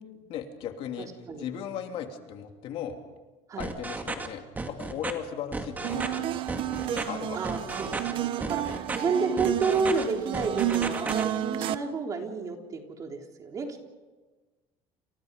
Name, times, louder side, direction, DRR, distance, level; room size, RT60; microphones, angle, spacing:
voice 1, 0.3-1.1 1.4-3.0 3.6-6.4 6.9-7.4 7.9-8.0, left 9 dB, 55° left, 4 dB, 3.1 m, -37 dB
sound 1, 3.6-4.3 4.6-5.1 5.5-6.2 6.5-7.0 7.4-8.1 8.4-9.0 9.4-10.0 10.3-11.2, right 3 dB, 15° right, 2.4 m, -33 dB
sound 2, 5.8-11.8, right 12 dB, 50° right, 1.2 m, -31 dB
voice 2, 7.3-13.9, right 4 dB, 30° right, 2 dB, 3.7 m, -30 dB
29.5 x 28.5 x 5.4 m, 1.2 s
cardioid pair, 155°, 11 cm